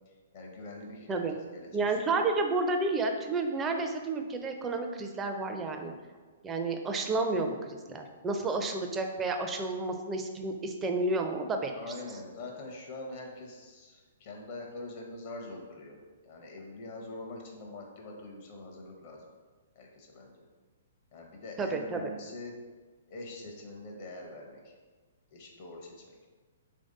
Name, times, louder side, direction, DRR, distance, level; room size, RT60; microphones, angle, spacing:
voice 1, 0.1-2.2 11.7-16.0 16.2-19.3 19.8-20.4 21.1-22.5 23.1-24.7 25.3-26.2, left 2 dB, 50° left, 0 dB, 0.7 m, -44 dB
voice 2, 1.7-5.9 6.4-11.8 21.6-22.0, right 3 dB, 15° right, 4 dB, 0.4 m, -31 dB
3.1 x 2.6 x 3.7 m, 1.4 s
hypercardioid pair, 125°, 0 cm